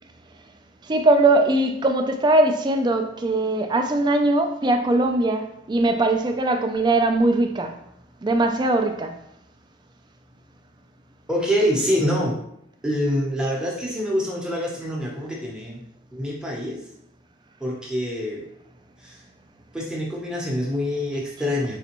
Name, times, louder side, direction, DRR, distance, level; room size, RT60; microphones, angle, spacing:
voice 1, 0.8-7.8 8.2-9.2, right 2 dB, 20° right, 0.3 m, -20 dB
voice 2, 11.3-12.4 12.8-15.8 16.1-16.8 17.6-18.4 19.0-19.2 19.7-21.8, equal, 5° right, 0.7 m, -25 dB
4.1 x 3.3 x 2.9 m
head